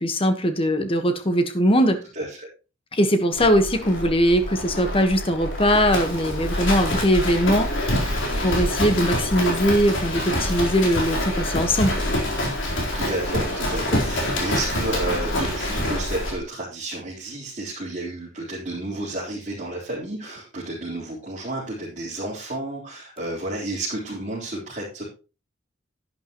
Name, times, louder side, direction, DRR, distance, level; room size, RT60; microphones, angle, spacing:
voice 1, 0.0-2.0 2.9-11.9, equal, 30° left, 7 dB, 1.4 m, -21 dB
voice 2, 2.2-2.5 8.3-8.6 12.9-25.0, right 2 dB, 40° right, -8 dB, 4.1 m, -31 dB
Livestock farm animals working animals, 3.3-16.4, left 1 dB, 65° left, 4.1 m, -26 dB
11.0 x 10.5 x 3.1 m, 0.33 s
head